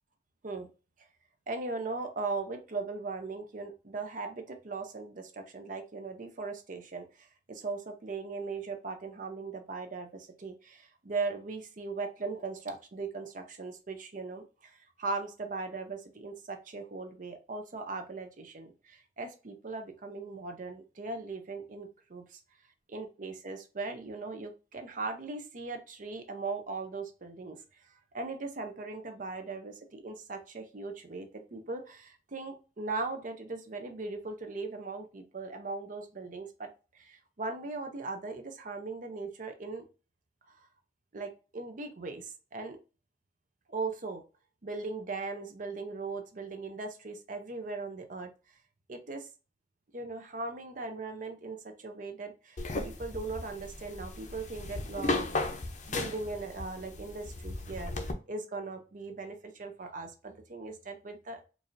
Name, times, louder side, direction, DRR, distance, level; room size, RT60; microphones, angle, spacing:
voice 1, 1.5-22.4 22.9-36.7 36.9-39.8 40.5-40.7 41.1-42.8 43.7-44.2 44.6-48.3 48.9-49.3 49.9-55.3 55.9-57.9 58.3-61.5, right 3 dB, 45° right, 6 dB, 0.6 m, -39 dB
sound 1, 52.6-58.1, left 2 dB, 45° left, 0.6 m, -36 dB
4.6 x 2.5 x 2.6 m, 0.32 s
head